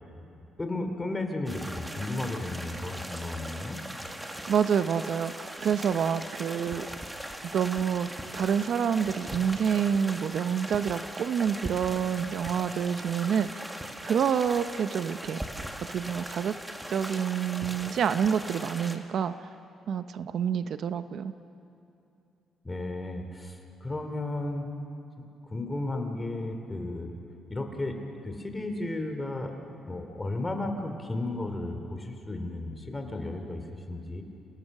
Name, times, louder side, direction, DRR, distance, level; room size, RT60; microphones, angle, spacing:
voice 1, 0.6-3.8 22.6-24.7 25.5-27.1 27.5-28.0 28.2-29.5 29.9-34.2, left 2 dB, 20° left, 5 dB, 2.9 m, -34 dB
sound 1, 1.5-19.0, right 1 dB, 10° right, 1.8 m, -40 dB
voice 2, 4.5-6.9 7.4-13.7 14.0-15.4 15.9-16.5 16.9-19.5 19.9-21.3, right 8 dB, 65° right, 11 dB, 0.7 m, -28 dB
28.5 x 18.0 x 6.6 m, 2.8 s
cardioid pair, 90°, 0 cm